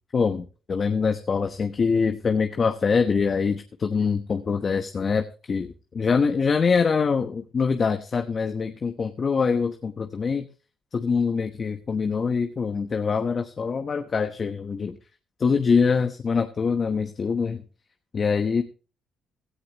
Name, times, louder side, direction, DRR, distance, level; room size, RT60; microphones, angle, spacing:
voice 1, 0.1-10.5 10.9-15.0 15.4-17.6 18.1-18.6, left 5 dB, 40° left, 7 dB, 1.0 m, -24 dB
16.5 x 13.0 x 3.0 m, 0.36 s
cardioid pair, 90°, 0 cm